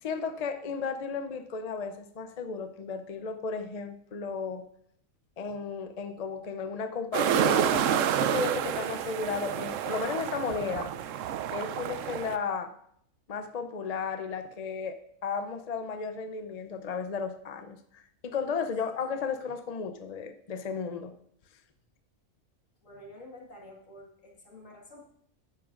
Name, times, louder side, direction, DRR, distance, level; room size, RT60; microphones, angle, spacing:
voice 1, 0.0-4.7 5.4-10.9 11.5-12.7 13.3-21.1, left 5 dB, 45° left, 8 dB, 0.5 m, -34 dB
sound 1, 7.1-12.4, right 9 dB, 75° right, 0.9 m, -29 dB
voice 2, 22.8-25.1, left 1 dB, 70° left, 0 dB, 2.2 m, -49 dB
12.5 x 9.8 x 2.5 m, 0.68 s
omnidirectional pair, 1.4 m